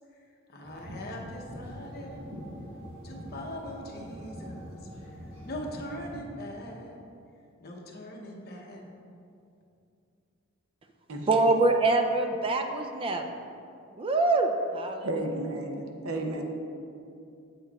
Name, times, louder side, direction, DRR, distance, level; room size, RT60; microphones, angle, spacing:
voice 1, 0.5-2.2 3.0-5.1 5.4-7.0 7.6-9.0, left 1 dB, 50° left, 0 dB, 0.8 m, -41 dB
sound 1, 0.6-6.2, equal, 65° right, 1.3 m, -43 dB
voice 2, 11.3-13.4 13.9-15.1, right 2 dB, 25° right, 5 dB, 0.3 m, -25 dB
voice 3, 15.0-16.5, right 2 dB, 80° right, 3 dB, 0.7 m, -32 dB
7.7 x 6.5 x 2.3 m, 2.6 s
head